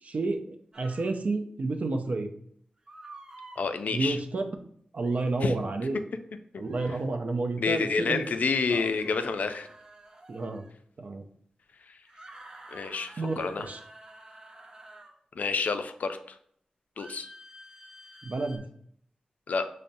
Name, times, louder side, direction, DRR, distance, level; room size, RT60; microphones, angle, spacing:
voice 1, 0.0-2.3 3.9-4.4 4.9-6.0 6.6-8.2 8.7-8.9 10.3-10.6 11.0-11.2 13.2-13.3 13.6-13.8 18.2-18.7, right 3 dB, 60° right, 5 dB, 0.4 m, -30 dB
sound 1, 0.7-1.1 2.9-3.6 5.0-5.3 6.6-7.0 8.8-10.7 12.1-15.2 17.0-18.6, right 1 dB, 30° right, 0.7 m, -49 dB
voice 2, 3.6-4.2 5.4-5.5 7.6-9.7 12.7-13.7 15.4-16.2 17.0-17.3 19.5-19.6, left 4 dB, 75° left, 8 dB, 0.3 m, -28 dB
5.3 x 2.0 x 2.6 m, 0.66 s
cardioid pair, 55°, 3 cm